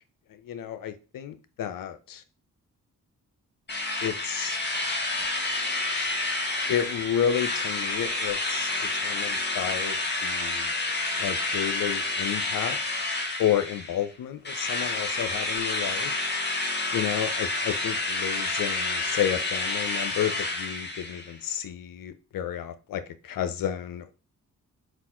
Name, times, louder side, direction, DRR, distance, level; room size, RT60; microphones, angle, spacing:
voice 1, 0.4-2.2 4.0-4.6 6.7-10.7 11.2-12.8 13.4-16.1 16.9-24.1, left 10 dB, 75° left, 0.7 m, -31 dB
Drill, 3.7-14.1 14.4-21.3, left 2 dB, 30° left, 1.3 m, -29 dB
4.0 x 2.5 x 4.3 m
cardioid pair, 65°, 34 cm